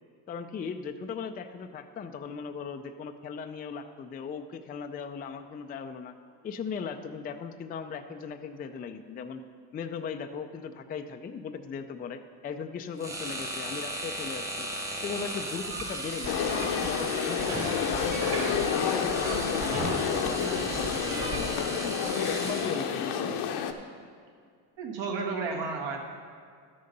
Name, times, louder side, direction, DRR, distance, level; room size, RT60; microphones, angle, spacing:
voice 1, 0.3-6.1 6.4-9.4 9.7-14.7 15.0-18.4 18.7-22.0 22.3-23.4, left 6 dB, 20° left, 7 dB, 0.3 m, -38 dB
sound 1, 13.0-23.1, right 1 dB, 5° right, 1.0 m, -37 dB
sound 2, 15.6-21.5, right 2 dB, 90° right, 2.8 m, -37 dB
sound 3, 16.3-23.7, left 7 dB, 60° left, 0.8 m, -29 dB
voice 2, 24.8-26.0, right 4 dB, 70° right, 0 dB, 1.9 m, -32 dB
12.0 x 6.6 x 5.3 m, 2.1 s
cardioid pair, 125°, 45 cm